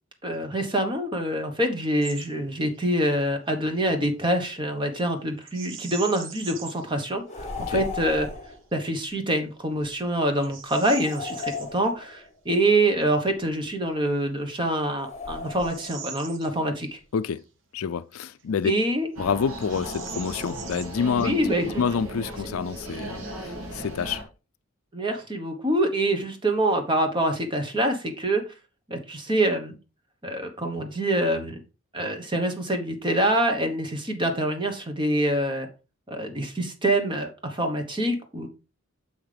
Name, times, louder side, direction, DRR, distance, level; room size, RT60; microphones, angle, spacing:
voice 1, 0.2-8.3 8.7-17.0 18.6-19.1 21.2-21.7 24.9-28.4 28.9-29.7 30.2-31.6 31.9-35.7 36.1-38.5, right 1 dB, 20° right, 1.2 m, -25 dB
Bird vocalization bird call bird song, 2.0-2.3 2.6-2.9 5.4-6.9 7.5-7.6 8.2-8.6 9.2-9.3 9.8-11.7 13.8-13.9 14.6-17.0 17.3-17.4 18.1-18.9 19.2-19.3 19.6-21.7, right 7 dB, 60° right, 1.1 m, -42 dB
sound 1, 7.3-8.6 10.9-12.3 15.0-16.1, left 4 dB, 30° left, 1.2 m, -36 dB
voice 2, 17.1-17.4 17.7-18.7 19.2-24.2, left 6 dB, 75° left, 0.4 m, -28 dB
sound 2, 19.2-24.2, right 1 dB, 85° right, 2.1 m, -36 dB
7.1 x 5.8 x 3.4 m
head